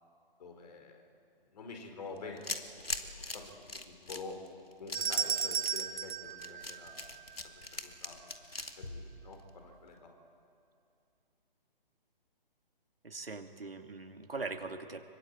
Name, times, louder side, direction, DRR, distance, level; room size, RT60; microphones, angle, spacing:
voice 1, 0.4-1.0 1.5-2.6 3.0-4.4 4.8-7.3 7.5-8.3 8.8-10.1, left 4 dB, 45° left, 4 dB, 5.0 m, -48 dB
sound 1, 2.1-9.9, left 2 dB, 90° left, 2.6 m, -42 dB
sound 2, 4.9-7.4, right 6 dB, 55° right, 1.3 m, -35 dB
voice 2, 13.0-15.0, right 3 dB, 80° right, 4 dB, 2.6 m, -41 dB
25.5 x 23.5 x 8.7 m, 2.5 s
figure-of-eight pair, 140°, 29 cm